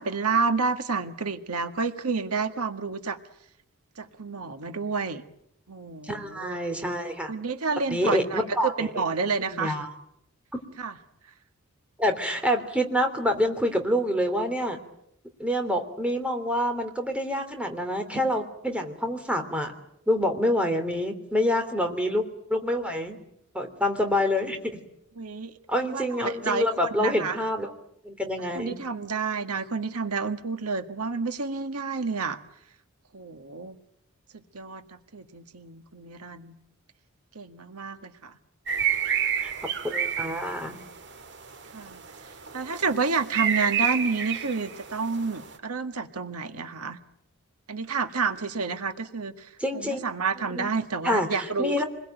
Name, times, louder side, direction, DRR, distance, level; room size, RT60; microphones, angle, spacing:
voice 1, 0.0-3.2 4.0-5.2 5.7-6.6 7.3-9.8 10.8-10.9 25.2-25.5 25.8-27.4 28.5-32.4 33.1-33.8 34.3-34.8 35.1-36.5 37.4-38.3 41.7-42.0 42.5-47.0 47.7-49.5 49.7-51.8, right 4 dB, 85° right, 8 dB, 1.7 m, -29 dB
voice 2, 6.0-7.3 7.9-9.0 9.4-9.9 12.0-14.8 15.4-19.7 20.1-22.2 22.5-23.2 23.5-24.8 25.7-27.7 28.0-28.8 39.4-39.5 39.8-40.8 49.6-50.0 50.5-50.7 51.0-51.8, equal, 5° right, 5 dB, 3.1 m, -27 dB
sound 1, 38.7-45.6, right 8 dB, 55° right, 1.8 m, -30 dB
28.0 x 21.5 x 9.1 m, 0.77 s
head